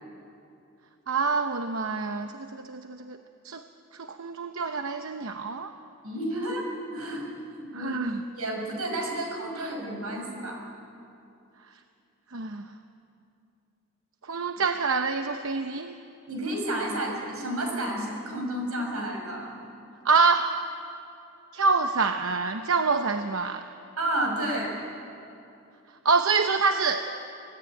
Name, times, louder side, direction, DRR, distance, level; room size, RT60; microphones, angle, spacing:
voice 1, 1.1-3.2 3.4-3.6 4.0-5.7 7.7-8.2 12.3-12.6 14.2-15.9 20.0-20.5 21.5-23.6 26.0-27.0, right 4 dB, 65° right, 6 dB, 0.9 m, -26 dB
voice 2, 6.0-7.3 7.5-8.0 8.3-10.6 16.3-19.5 24.0-24.8, right 1 dB, 90° right, 1 dB, 6.3 m, -31 dB
26.0 x 17.5 x 9.2 m, 2.7 s
head